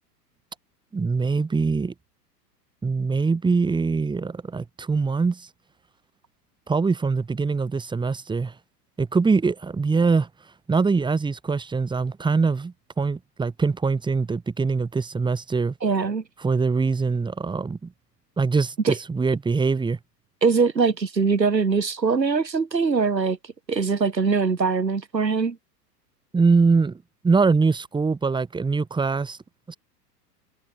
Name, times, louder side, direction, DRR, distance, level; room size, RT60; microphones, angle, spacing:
voice 1, 0.9-1.9 2.8-5.5 6.7-8.5 9.0-10.3 10.7-15.7 16.4-17.9 18.4-20.0 26.3-29.4 29.7-29.8, right 4 dB, 10° right, 2.7 m, -23 dB
voice 2, 15.8-16.2 18.8-19.0 20.4-23.4 23.7-25.6, right 5 dB, 85° right, 1.5 m, -22 dB
figure-of-eight pair, 100°, 49 cm